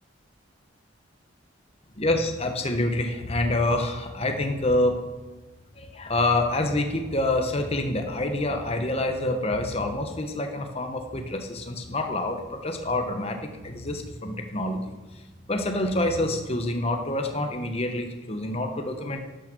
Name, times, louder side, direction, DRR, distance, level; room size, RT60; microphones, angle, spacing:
voice 1, 2.0-5.0 5.8-15.2 15.5-19.2, left 1 dB, 30° left, 4 dB, 1.1 m, -27 dB
11.5 x 9.2 x 6.2 m, 1.2 s
head